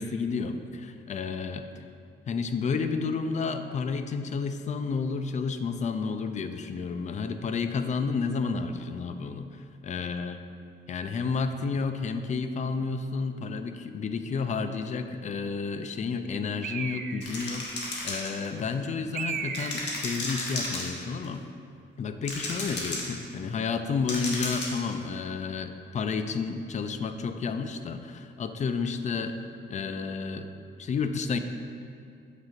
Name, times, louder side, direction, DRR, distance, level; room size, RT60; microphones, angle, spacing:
voice 1, 0.0-1.7 2.3-10.4 10.9-21.5 22.0-29.4 29.7-30.5 30.8-31.4, left 5 dB, 35° left, 9 dB, 0.4 m, -31 dB
Bird, 16.6-17.5 19.1-20.1, right 6 dB, 50° right, 0.4 m, -35 dB
sound 1, 17.2-18.7 19.5-21.2 22.2-23.2 24.1-24.9, left 2 dB, 60° left, 1.3 m, -33 dB
7.4 x 6.2 x 2.5 m, 2.4 s
cardioid pair, 90°, 20 cm